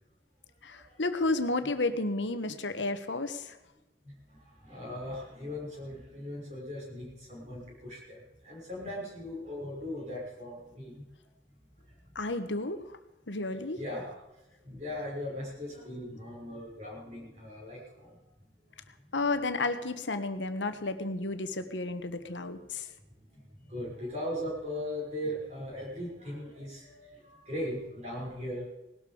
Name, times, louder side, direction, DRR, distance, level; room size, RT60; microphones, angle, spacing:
voice 1, 0.6-3.6 12.1-12.8 13.3-13.8 19.1-22.9, left 2 dB, 85° left, 9 dB, 1.4 m, -32 dB
voice 2, 4.0-8.2 8.4-11.0 13.7-14.2 14.6-18.2 23.3-28.7, left 1 dB, 40° right, -4 dB, 6.0 m, -39 dB
19.0 x 12.5 x 5.0 m, 0.97 s
head